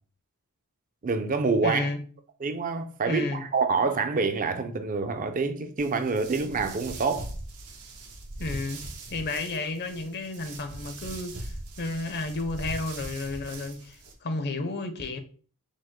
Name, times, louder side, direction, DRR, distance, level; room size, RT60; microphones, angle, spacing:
voice 1, 1.0-1.9 2.4-3.3 3.5-7.3, right 4 dB, 35° right, 0.5 m, -26 dB
voice 2, 1.6-2.0 3.1-3.4 8.4-8.8 9.1-15.2, left 2 dB, 45° left, 0.6 m, -32 dB
sound 1, 5.8-14.1, right 2 dB, 85° right, 1.0 m, -41 dB
5.1 x 2.0 x 3.6 m
head